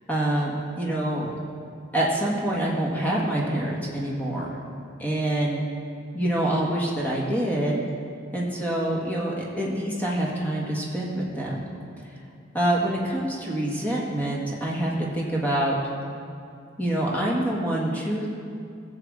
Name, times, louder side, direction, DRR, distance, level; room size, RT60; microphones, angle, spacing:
voice 1, 0.1-0.5 0.8-1.3 1.9-4.6 5.0-5.6 6.1-7.7 8.3-11.6 12.5-15.7 16.8-18.3, right 1 dB, 10° left, -4 dB, 1.7 m, -26 dB
16.0 x 7.3 x 3.8 m, 2.5 s
head